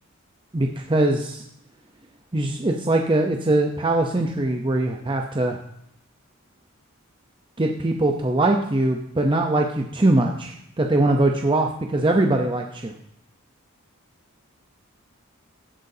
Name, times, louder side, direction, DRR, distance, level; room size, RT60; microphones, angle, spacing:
voice 1, 0.5-1.4 2.3-5.6 7.6-12.9, right 2 dB, 25° right, 2 dB, 0.7 m, -22 dB
15.5 x 8.1 x 2.8 m, 0.75 s
head